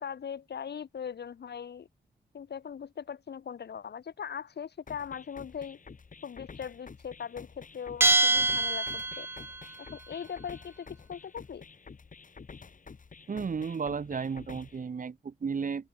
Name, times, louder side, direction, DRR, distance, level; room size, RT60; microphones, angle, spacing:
voice 1, 0.0-1.9 2.3-5.8 6.2-9.3 9.8-11.6, left 7 dB, 70° left, 2.3 m, -40 dB
sound 1, 4.9-14.9, left 5 dB, 50° left, 3.6 m, -50 dB
Bell, 8.0-9.6, right 2 dB, 15° right, 0.4 m, -25 dB
voice 2, 13.3-15.9, right 5 dB, 50° right, 1.7 m, -33 dB
open air
cardioid pair, 85°, 18 cm